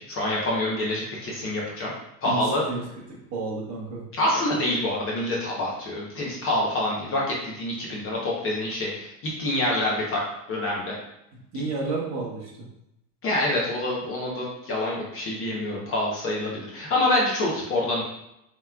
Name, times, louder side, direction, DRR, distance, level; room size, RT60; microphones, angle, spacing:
voice 1, 0.0-1.9 2.2-2.6 4.1-9.1 9.4-10.2 10.5-10.9 13.2-18.0, left 1 dB, 25° left, -4 dB, 0.8 m, -26 dB
voice 2, 2.2-2.8 3.3-4.0 11.5-12.5, right 3 dB, 35° right, -3 dB, 1.0 m, -30 dB
5.4 x 3.1 x 2.2 m, 0.84 s
supercardioid pair, 160°, 48 cm